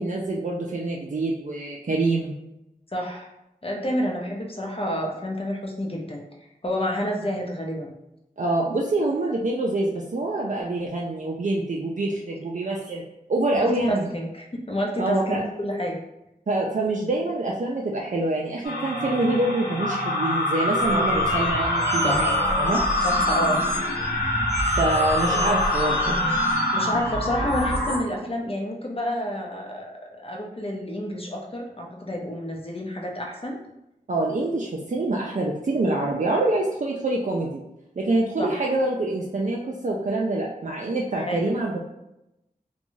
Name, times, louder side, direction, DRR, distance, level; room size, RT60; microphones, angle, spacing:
voice 1, 0.0-2.3 8.4-13.0 13.3-14.1 15.0-15.4 16.5-22.3 22.6-22.8 24.7-26.2 34.1-37.6 38.0-41.8, right 2 dB, 50° right, -2 dB, 0.4 m, -25 dB
voice 2, 2.9-3.3 3.6-7.9 13.5-16.0 22.0-22.3 23.0-23.6 26.7-33.6 38.4-38.6 41.1-41.5, equal, 35° left, 0 dB, 0.6 m, -29 dB
sound 1, 18.6-28.0, left 1 dB, 85° left, 0.7 m, -24 dB
2.5 x 2.2 x 3.0 m, 0.89 s
wide cardioid pair, 40°, 16 cm